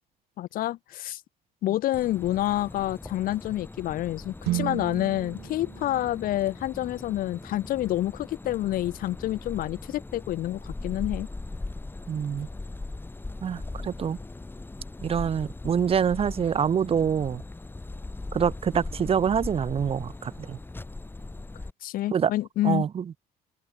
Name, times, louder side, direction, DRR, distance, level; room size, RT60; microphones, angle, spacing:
voice 1, 0.4-1.2 1.6-11.3 21.8-22.9, left 14 dB, 55° left, 0.4 m, -28 dB
sound 1, 1.9-21.7, left 2 dB, 10° left, 1.5 m, -40 dB
sound 2, 4.4-8.5, right 17 dB, 80° right, 1.3 m, -36 dB
voice 2, 12.1-12.5 13.4-14.2 15.0-17.4 18.3-20.6 22.1-22.3 22.6-23.0, right 7 dB, 35° right, 0.7 m, -26 dB
cardioid pair, 110°, 17 cm